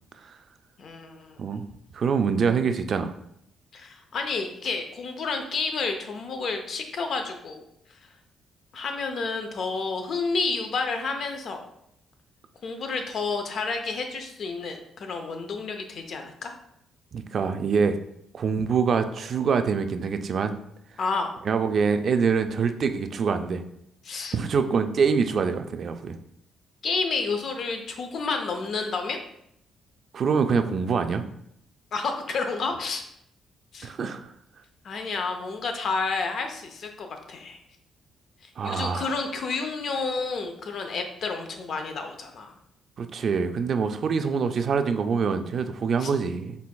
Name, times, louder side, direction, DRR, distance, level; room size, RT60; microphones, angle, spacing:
voice 1, 0.8-1.4 3.7-7.6 8.7-11.6 12.6-16.5 21.0-21.3 24.0-24.3 26.8-29.2 31.9-33.0 33.7-33.9 34.8-37.6 38.6-42.5 46.0-46.1, left 4 dB, 60° left, 5 dB, 0.6 m, -30 dB
voice 2, 1.9-3.1 17.1-18.0 18.3-20.6 21.4-23.6 24.3-26.2 30.1-31.2 33.8-34.3 38.6-39.1 43.0-46.6, right 5 dB, 55° right, 8 dB, 0.3 m, -25 dB
4.5 x 3.4 x 2.2 m, 0.74 s
cardioid pair, 90°, 0 cm